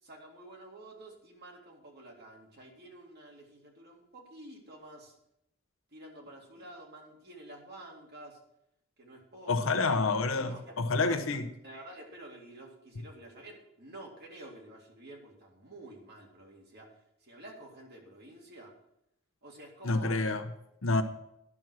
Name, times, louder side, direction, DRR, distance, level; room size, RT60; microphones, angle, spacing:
voice 1, 0.0-5.2 5.9-8.4 9.0-10.0 10.5-10.7 11.1-11.2 11.6-18.7 19.4-20.2, right 1 dB, 50° right, 0 dB, 2.2 m, -50 dB
voice 2, 9.5-11.4 19.8-20.4 20.8-21.0, left 3 dB, 70° left, 9 dB, 0.8 m, -28 dB
11.0 x 5.9 x 6.3 m, 0.80 s
head